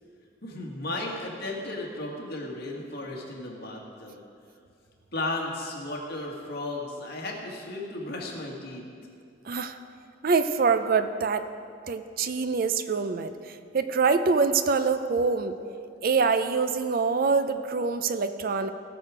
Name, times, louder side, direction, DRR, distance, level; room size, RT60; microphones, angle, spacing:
voice 1, 0.4-4.2 5.1-8.8, left 2 dB, 55° left, -1 dB, 1.9 m, -35 dB
voice 2, 9.5-9.8 10.2-11.5 11.9-13.3 13.7-15.6 16.0-18.7, right 4 dB, 50° right, 10 dB, 0.5 m, -25 dB
18.0 x 6.3 x 5.0 m, 2.4 s
head